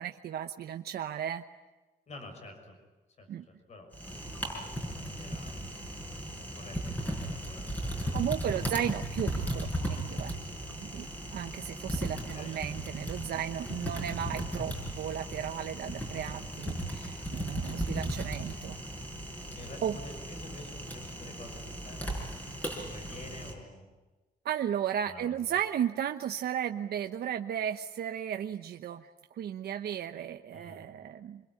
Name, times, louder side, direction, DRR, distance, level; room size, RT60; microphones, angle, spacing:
voice 1, 0.0-1.4 3.3-3.4 8.1-10.4 10.7-18.8 19.8-20.0 22.6-22.8 24.4-31.4, right 9 dB, 90° right, 6 dB, 1.0 m, -35 dB
voice 2, 2.1-2.7 3.2-5.7 6.4-8.4 12.1-12.6 19.5-22.2 22.8-23.8 25.0-25.4 30.5-30.8, left 2 dB, 45° left, 5 dB, 6.3 m, -49 dB
Typing, 3.9-23.5, equal, 10° left, 5.6 m, -37 dB
26.0 x 22.0 x 9.8 m, 1.2 s
wide cardioid pair, 170°, 16 cm